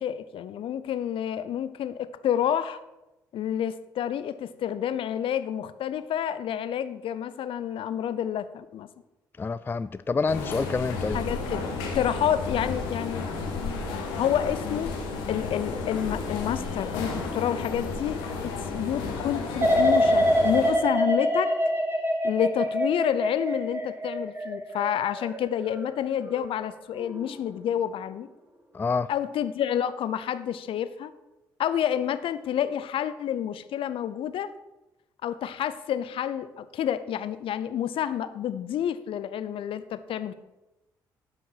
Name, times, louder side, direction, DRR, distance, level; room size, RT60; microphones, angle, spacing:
voice 1, 0.0-2.8 3.3-8.9 11.1-13.3 14.2-15.0 15.3-21.5 22.2-28.3 29.1-31.1 31.6-34.5 35.2-40.3, left 10 dB, 55° left, 14 dB, 0.6 m, -29 dB
voice 2, 9.4-11.2 28.7-29.1, left 4 dB, 20° left, 15 dB, 0.3 m, -27 dB
sound 1, 10.3-20.7, left 4 dB, 75° left, 1.5 m, -32 dB
sound 2, 19.6-26.5 27.0-27.4, equal, 20° right, 1.8 m, -26 dB
12.0 x 5.5 x 5.5 m, 1.0 s
hypercardioid pair, 45°, 11 cm